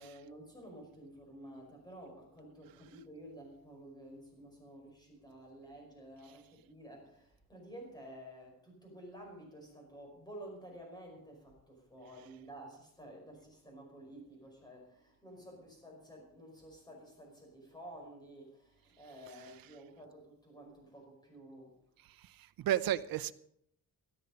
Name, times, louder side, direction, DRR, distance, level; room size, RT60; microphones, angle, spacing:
voice 1, 0.0-21.8, right 1 dB, 10° left, 0 dB, 5.3 m, -52 dB
voice 2, 22.0-23.3, right 12 dB, 90° right, 12 dB, 0.7 m, -34 dB
17.0 x 12.5 x 5.3 m, 0.71 s
wide cardioid pair, 160°, 34 cm